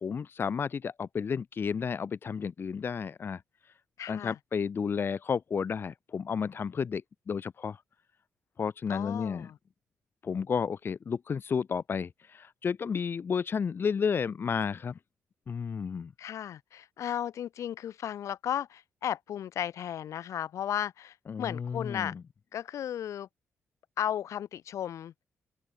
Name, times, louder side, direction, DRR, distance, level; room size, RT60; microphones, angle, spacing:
voice 1, 0.0-3.4 4.1-7.0 7.3-7.8 8.6-9.5 10.2-15.0 15.5-16.1 21.3-22.1, left 6 dB, 45° left, 0.8 m, -32 dB
voice 2, 4.0-4.4 8.9-9.6 16.2-22.1 22.5-23.3 24.0-25.1, left 10 dB, 75° left, 1.0 m, -35 dB
open air
cardioid pair, 95°, 5 cm